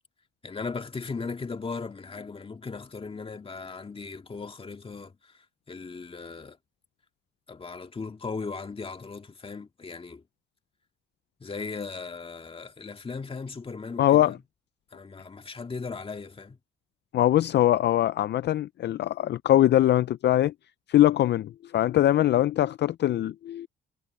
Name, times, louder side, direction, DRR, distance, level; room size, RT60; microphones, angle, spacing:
voice 1, 0.4-6.6 7.5-10.2 11.4-14.4 14.9-16.6, left 4 dB, 30° left, 2.1 m, -37 dB
voice 2, 14.0-14.4 17.1-20.5 20.9-23.7, left 13 dB, 60° left, 0.5 m, -22 dB
cardioid pair, 90°, 20 cm